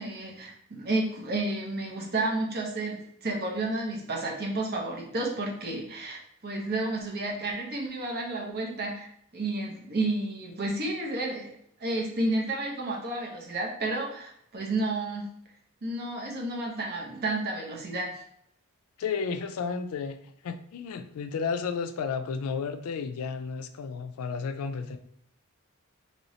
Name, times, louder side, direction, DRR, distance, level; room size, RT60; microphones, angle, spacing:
voice 1, 0.0-11.5 11.8-15.3 15.8-18.2, right 2 dB, 45° right, -1 dB, 0.7 m, -31 dB
voice 2, 19.0-20.2 20.4-25.0, left 5 dB, 80° left, 9 dB, 0.3 m, -32 dB
3.1 x 3.0 x 2.7 m, 0.68 s
head